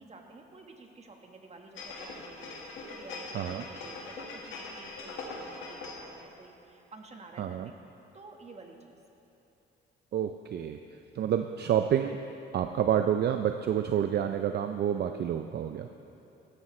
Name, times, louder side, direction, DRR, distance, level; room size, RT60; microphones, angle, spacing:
voice 1, 0.0-7.7 8.1-9.0, right 3 dB, 35° right, 2 dB, 1.5 m, -51 dB
sound 1, 1.8-6.2 6.5-6.6, left 3 dB, 90° left, 1.8 m, -42 dB
voice 2, 7.4-7.7 10.1-10.8 11.1-12.2 12.5-15.9, right 9 dB, 55° right, 7 dB, 0.5 m, -28 dB
16.5 x 12.5 x 3.2 m, 2.9 s
cardioid pair, 90°, 20 cm